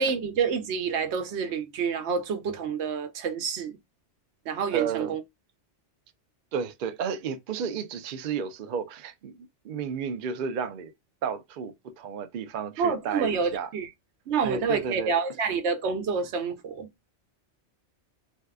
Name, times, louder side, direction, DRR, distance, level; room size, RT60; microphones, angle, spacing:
voice 1, 0.0-3.8 4.5-5.2 12.8-13.9 14.3-16.9, right 5 dB, 75° right, 0.9 m, -28 dB
voice 2, 4.7-5.2 6.5-9.4 9.6-10.9 11.2-13.7 14.4-15.1, right 7 dB, 60° right, 0.6 m, -32 dB
2.7 x 2.3 x 3.3 m
omnidirectional pair, 1.2 m